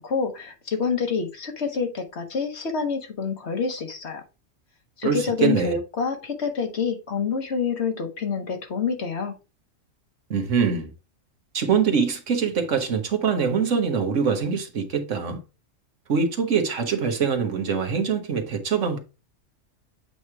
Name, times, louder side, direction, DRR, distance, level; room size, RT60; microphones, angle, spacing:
voice 1, 0.0-4.2 5.0-9.4, left 5 dB, 55° left, 1.5 m, -27 dB
voice 2, 5.0-5.8 10.3-10.9 11.5-15.4 16.1-19.0, right 6 dB, 70° right, 1.5 m, -23 dB
7.8 x 3.0 x 4.8 m
omnidirectional pair, 1.3 m